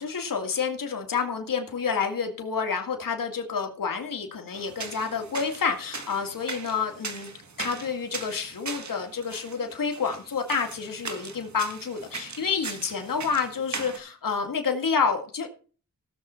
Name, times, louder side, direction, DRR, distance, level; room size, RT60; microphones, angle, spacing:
voice 1, 0.0-7.3 7.6-15.5, left 5 dB, 80° left, 3 dB, 2.1 m, -29 dB
sound 1, 4.5-14.0, right 4 dB, 60° right, 1.9 m, -39 dB
17.0 x 6.8 x 4.4 m, 0.38 s
cardioid pair, 50°, 33 cm